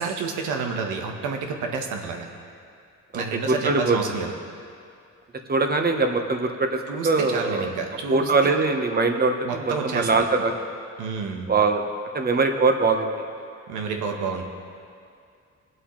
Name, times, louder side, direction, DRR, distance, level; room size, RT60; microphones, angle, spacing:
voice 1, 0.0-2.3 3.1-4.3 6.9-8.5 9.4-10.2 11.0-11.5 13.7-14.4, right 5 dB, 90° right, 3 dB, 1.3 m, -29 dB
voice 2, 3.1-4.0 5.5-7.6 8.1-10.6 11.5-11.8 12.1-13.2, right 3 dB, 30° right, 4 dB, 1.1 m, -22 dB
20.0 x 7.8 x 3.2 m, 2.3 s
cardioid pair, 85°, 30 cm